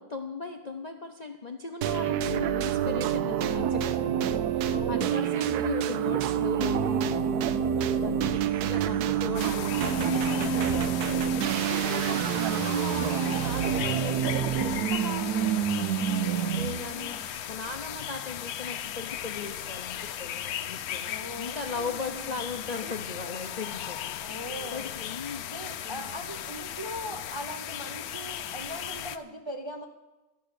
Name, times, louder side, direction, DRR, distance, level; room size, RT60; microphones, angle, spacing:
voice 1, 0.0-24.4 24.7-25.4 25.8-26.2, left 4 dB, 40° left, 4 dB, 0.6 m, -38 dB
sound 1, 1.8-16.9, right 9 dB, 75° right, 1.1 m, -27 dB
voice 2, 4.7-5.3 16.1-17.3 21.0-22.3 24.2-24.8 25.4-29.9, equal, 25° right, 2 dB, 0.6 m, -41 dB
sound 2, 9.3-29.2, left 10 dB, 70° left, 1.1 m, -37 dB
13.0 x 8.6 x 6.6 m, 1.1 s
omnidirectional pair, 1.7 m